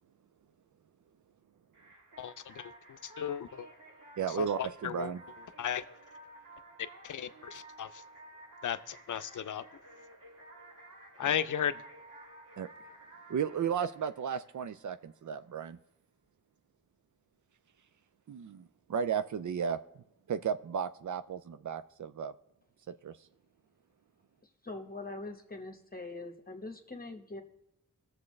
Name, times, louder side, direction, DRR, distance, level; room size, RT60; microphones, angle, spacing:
sound 1, 1.7-15.2, right 2 dB, 85° right, 1.8 m, -53 dB
voice 1, 2.2-3.7 4.4-4.5 4.8-5.1 5.6-5.8 7.0-7.9 8.6-9.6 11.2-11.8, left 9 dB, 70° left, 13 dB, 0.6 m, -35 dB
voice 2, 4.2-5.2 11.2-11.3 12.6-12.7 13.3-15.8 18.3-22.3 22.9-23.1, right 7 dB, 70° right, 13 dB, 0.5 m, -34 dB
voice 3, 24.6-27.4, left 2 dB, 30° left, 4 dB, 1.1 m, -43 dB
19.5 x 7.2 x 3.2 m, 0.83 s
cardioid pair, 55°, 31 cm